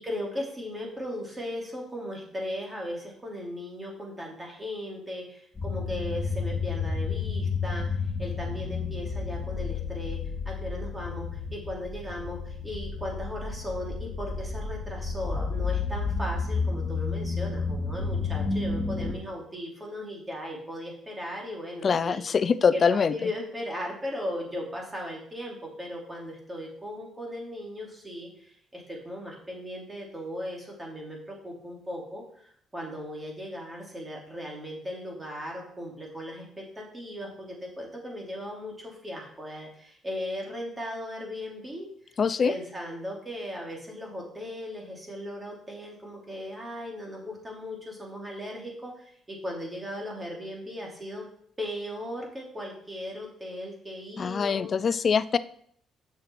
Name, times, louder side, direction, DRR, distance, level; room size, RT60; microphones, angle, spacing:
voice 1, 0.0-10.2 10.4-22.2 22.7-41.9 42.4-51.2 51.6-54.7, left 1 dB, 20° right, -1 dB, 2.7 m, -37 dB
sound 1, 5.5-19.1, left 4 dB, 20° left, 3.3 m, -31 dB
voice 2, 21.8-23.1 42.2-42.5 54.2-55.4, left 6 dB, 45° left, 16 dB, 0.4 m, -23 dB
6.9 x 6.6 x 4.5 m, 0.64 s
cardioid pair, 90°, 0 cm